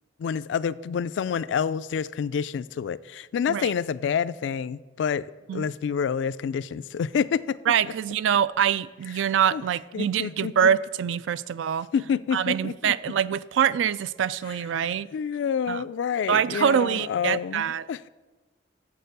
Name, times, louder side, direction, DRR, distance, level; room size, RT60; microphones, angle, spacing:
voice 1, 0.2-7.6 9.5-9.6 9.9-10.5 11.9-12.9 15.1-18.1, left 7 dB, 75° left, 0.3 m, -28 dB
voice 2, 7.7-11.9 12.3-15.1 15.7-15.8 16.3-17.9, right 8 dB, 85° right, 0.3 m, -24 dB
7.4 x 6.6 x 6.6 m
head